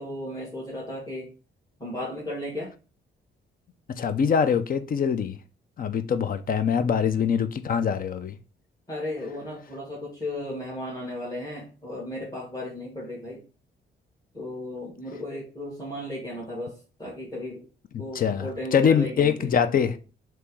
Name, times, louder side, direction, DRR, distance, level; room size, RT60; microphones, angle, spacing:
voice 1, 0.0-1.3 1.8-2.7 8.9-13.4 14.3-17.6 18.0-19.5, left 1 dB, 20° left, 1.6 m, -35 dB
voice 2, 4.0-5.4 5.8-8.3 18.1-20.0, left 7 dB, 45° left, 0.5 m, -23 dB
3.4 x 3.0 x 4.6 m
cardioid pair, 90°, 20 cm